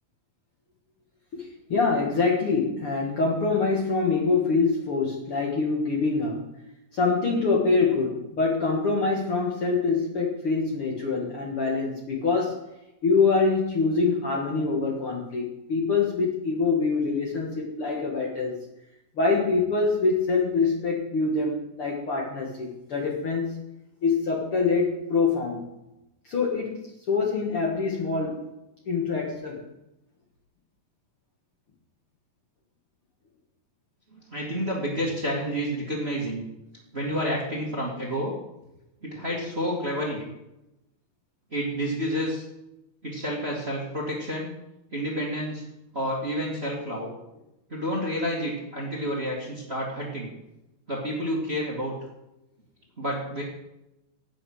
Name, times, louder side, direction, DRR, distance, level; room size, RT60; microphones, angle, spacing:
voice 1, 1.3-6.5 6.9-12.6 13.0-18.6 19.2-23.6 24.0-25.6 26.3-28.4 28.9-29.6, left 4 dB, 50° left, -2 dB, 1.9 m, -25 dB
voice 2, 34.1-36.5 36.9-38.3 39.0-40.3 41.5-42.4 43.0-44.5 44.9-45.6 45.9-47.1 47.7-50.3 50.9-51.9 53.0-53.4, equal, 20° right, -3 dB, 1.9 m, -29 dB
11.0 x 9.2 x 6.3 m, 0.92 s
omnidirectional pair, 4.2 m